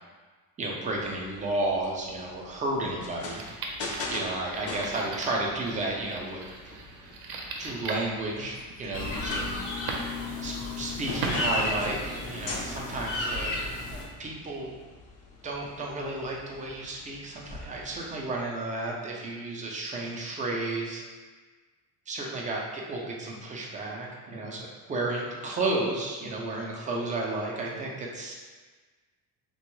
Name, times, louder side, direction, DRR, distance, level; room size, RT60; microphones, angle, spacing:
voice 1, 0.6-3.4 4.1-6.4 7.6-9.6 10.4-13.5 14.2-14.7 15.4-21.1 22.1-28.3, right 2 dB, 20° right, -2 dB, 0.3 m, -32 dB
sound 1, 0.8-18.3, left 2 dB, 40° left, 0.5 m, -43 dB
sound 2, 3.3-12.3, right 3 dB, 70° right, 0.6 m, -40 dB
sound 3, 8.9-14.0, left 2 dB, 85° left, 0.8 m, -33 dB
3.4 x 2.2 x 3.0 m, 1.4 s
cardioid pair, 150°, 39 cm